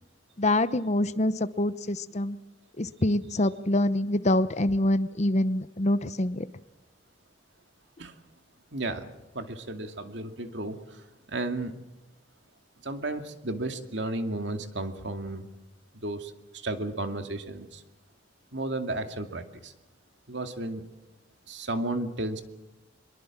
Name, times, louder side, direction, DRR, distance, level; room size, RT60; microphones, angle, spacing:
voice 1, 0.4-2.4 2.8-6.4, left 1 dB, 35° left, 14 dB, 0.8 m, -25 dB
voice 2, 8.7-11.7 12.8-15.5 15.9-17.8 18.5-19.7 20.3-20.9 21.5-22.4, right 2 dB, 70° right, 6 dB, 2.3 m, -33 dB
25.0 x 22.5 x 7.4 m, 0.95 s
head